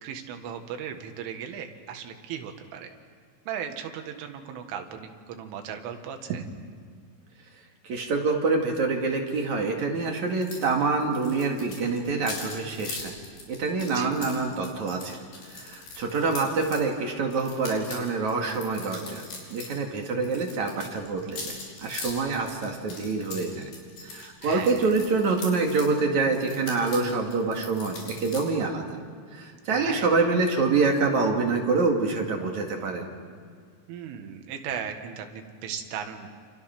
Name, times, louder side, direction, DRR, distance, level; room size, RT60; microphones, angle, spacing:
voice 1, 0.0-2.9 3.5-6.4 13.9-14.2 24.4-24.9 29.7-30.1 33.9-36.3, right 8 dB, 85° right, 5 dB, 4.3 m, -36 dB
voice 2, 7.8-13.2 13.5-15.2 15.5-19.2 19.5-23.7 24.0-28.9 29.3-33.1, right 4 dB, 50° right, 1 dB, 2.8 m, -26 dB
sound 1, 10.4-10.7 10.9-16.8 17.3-19.8 20.0-25.9 26.3-28.4, left 3 dB, 55° left, 6.7 m, -41 dB
29.5 x 28.0 x 6.0 m, 2.1 s
omnidirectional pair, 5.5 m